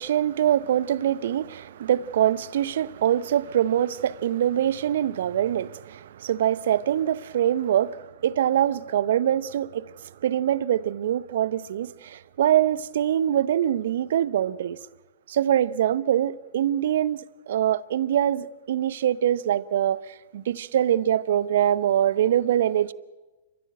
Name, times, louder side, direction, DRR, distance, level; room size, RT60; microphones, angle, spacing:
voice 1, 0.0-14.8 15.3-17.2 17.5-22.9, right 10 dB, 65° right, 0.8 m, -24 dB
30.0 x 15.0 x 8.9 m
hypercardioid pair, 110°, 0 cm